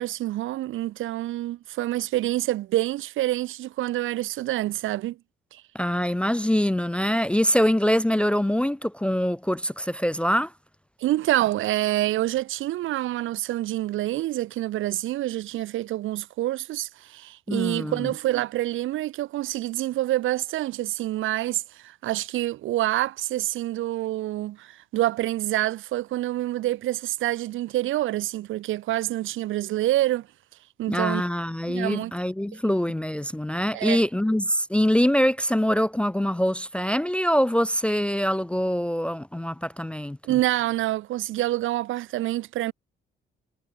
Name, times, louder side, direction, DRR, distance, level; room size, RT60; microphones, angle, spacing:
voice 1, 0.0-5.2 5.5-5.6 11.0-30.3 30.8-31.2 31.7-32.1 33.7-34.0 40.2-42.7, right 15 dB, 80° right, 1.0 m, -27 dB
voice 2, 5.7-10.5 17.5-18.1 30.9-40.2, equal, 5° left, 0.4 m, -24 dB
cardioid pair, 90°, 20 cm